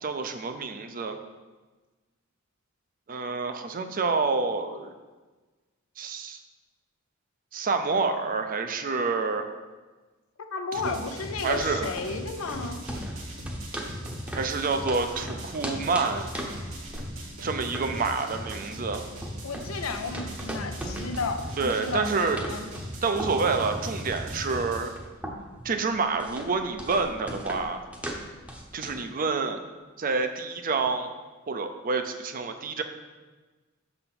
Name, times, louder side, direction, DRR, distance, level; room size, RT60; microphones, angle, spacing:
voice 1, 0.0-1.2 3.1-4.9 6.0-6.4 7.5-9.4 10.8-11.0 11.4-11.9 14.3-16.3 17.4-19.0 21.6-22.4 23.0-24.9 25.6-27.8 28.7-29.6 30.0-31.1 31.5-32.8, right 4 dB, 45° right, 7 dB, 0.6 m, -28 dB
voice 2, 10.4-12.8 17.8-18.1 19.4-22.7, left 4 dB, 90° left, 6 dB, 0.6 m, -33 dB
sound 1, 10.7-24.9, equal, 80° right, 1.6 m, -39 dB
sound 2, 11.3-29.1, right 1 dB, 5° right, 0.8 m, -40 dB
6.5 x 4.0 x 5.9 m, 1.3 s
head